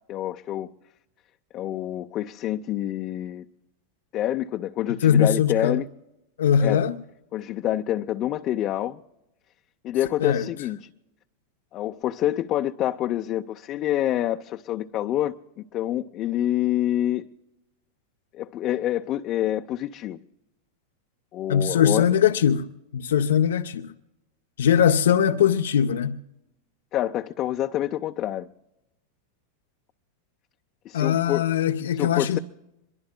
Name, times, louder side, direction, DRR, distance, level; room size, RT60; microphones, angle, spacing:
voice 1, 0.1-0.7 1.5-3.4 4.1-5.9 6.6-6.8 7.3-9.0 9.8-10.8 11.7-17.3 18.3-20.2 21.3-22.0 26.9-28.5 30.8-31.4 32.0-32.4, left 12 dB, 40° left, 0.6 m, -27 dB
voice 2, 5.0-5.8 6.4-7.0 10.2-10.5 21.5-23.9 24.6-26.2 30.9-32.4, left 8 dB, 80° left, 0.6 m, -21 dB
26.0 x 22.5 x 2.2 m
hypercardioid pair, 110°, 0 cm